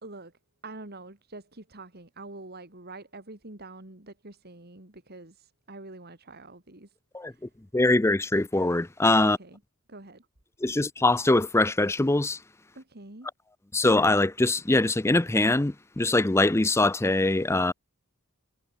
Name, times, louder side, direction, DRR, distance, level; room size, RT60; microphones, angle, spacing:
voice 1, 0.0-7.5 9.2-9.6 9.9-10.3 12.7-13.3, right 2 dB, 45° right, 3.0 m, -46 dB
voice 2, 7.7-9.4 10.6-12.4 13.7-17.7, left 2 dB, 10° left, 0.5 m, -23 dB
head